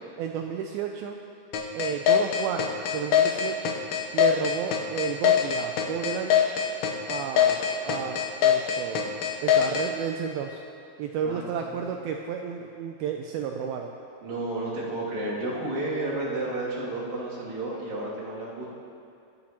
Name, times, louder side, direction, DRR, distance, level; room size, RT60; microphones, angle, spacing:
voice 1, 0.2-1.2 1.7-3.8 4.1-6.5 7.1-10.6 11.0-13.9, right 7 dB, 85° right, 3 dB, 2.1 m, -32 dB
sound 1, 1.5-9.9, left 9 dB, 75° left, 2.2 m, -22 dB
voice 2, 11.2-11.9 14.2-18.7, right 2 dB, 55° right, -9 dB, 4.2 m, -32 dB
23.5 x 8.7 x 3.0 m, 2.4 s
omnidirectional pair, 4.9 m